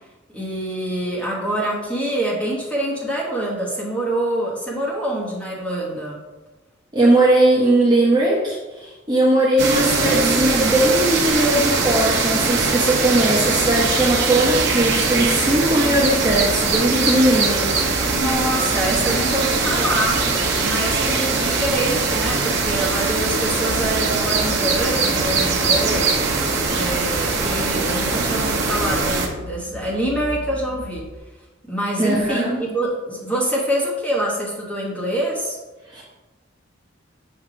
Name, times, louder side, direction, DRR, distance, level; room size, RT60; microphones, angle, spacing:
voice 1, 0.3-6.2 18.1-20.2 20.6-26.2 26.7-31.1 31.7-35.6, right 1 dB, 5° left, -5 dB, 1.3 m, -25 dB
voice 2, 6.9-17.7 32.0-32.6 35.9-36.0, right 1 dB, 20° right, -5 dB, 0.8 m, -19 dB
sound 1, 9.6-29.3, right 4 dB, 55° right, 1.0 m, -21 dB
sound 2, 13.4-31.2, left 1 dB, 25° left, 0.6 m, -37 dB
6.6 x 2.9 x 4.9 m, 1.1 s
head